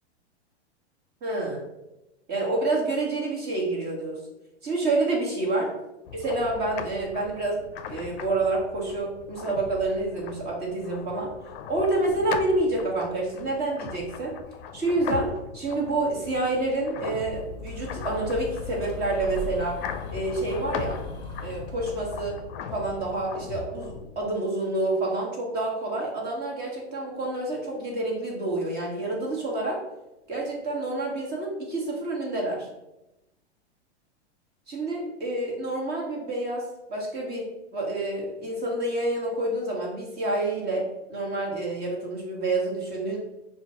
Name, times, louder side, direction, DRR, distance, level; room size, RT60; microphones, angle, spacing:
voice 1, 1.2-1.6 2.3-4.2 4.6-5.7 6.1-7.6 7.9-11.3 11.7-14.3 14.7-19.8 20.1-21.0 21.4-22.4 22.7-29.8 30.3-32.7 34.7-43.2, right 2 dB, 30° right, -2 dB, 1.5 m, -28 dB
sound 1, 6.0-24.3, left 7 dB, 55° left, 0.5 m, -39 dB
sound 2, 17.3-22.2, left 2 dB, 15° left, 1.6 m, -39 dB
5.0 x 2.4 x 4.2 m, 0.95 s
hypercardioid pair, 110°, 34 cm